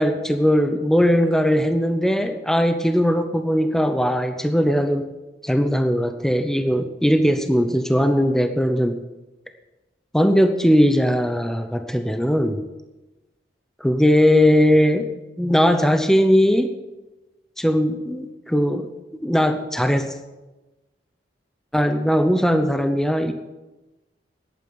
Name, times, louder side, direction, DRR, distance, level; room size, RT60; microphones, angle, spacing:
voice 1, 0.0-5.1 5.4-9.0 10.1-12.6 13.8-15.1 15.4-16.7 17.6-18.9 19.2-20.1 21.7-23.3, equal, 5° left, 7 dB, 0.6 m, -19 dB
11.0 x 9.1 x 7.8 m, 1.1 s
head